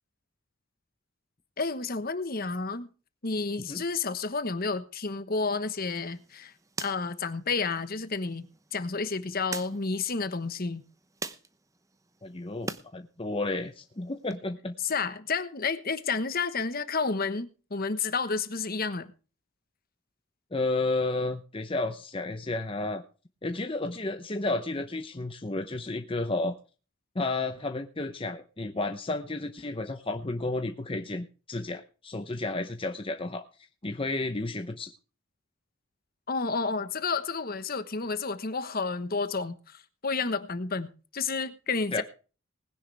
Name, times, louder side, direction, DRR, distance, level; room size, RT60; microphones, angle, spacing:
voice 1, 1.6-2.9 3.2-6.5 6.8-10.8 14.8-19.1 36.3-42.0, left 4 dB, 45° left, 1.2 m, -31 dB
sound 1, 5.7-12.9 13.2-14.4, right 3 dB, 15° right, 0.8 m, -44 dB
voice 2, 12.2-14.7 20.5-23.0 23.4-26.5 27.1-33.4 33.8-34.9 41.9-42.0, left 2 dB, 25° left, 0.8 m, -32 dB
19.5 x 10.5 x 3.4 m
head